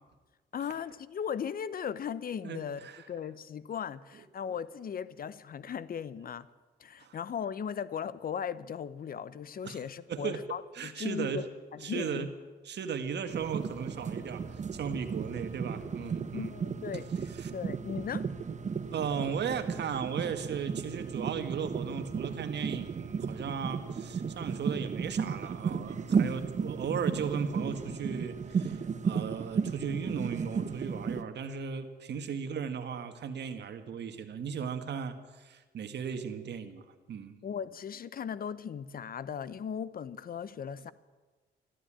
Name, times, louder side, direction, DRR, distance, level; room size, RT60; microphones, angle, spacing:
voice 1, 0.5-2.8 3.1-6.5 6.8-11.5 11.7-12.3 16.3-18.3 37.4-40.9, left 7 dB, 45° left, 17 dB, 0.7 m, -37 dB
voice 2, 2.4-3.1 7.0-7.2 9.6-9.8 10.1-10.4 10.7-11.4 11.8-12.3 12.6-16.5 17.3-17.5 18.9-37.4, right 7 dB, 60° right, 8 dB, 1.7 m, -36 dB
sound 1, 13.3-31.2, right 6 dB, 35° right, 0.9 m, -34 dB
13.0 x 12.5 x 8.7 m, 1.3 s
cardioid pair, 90°, 20 cm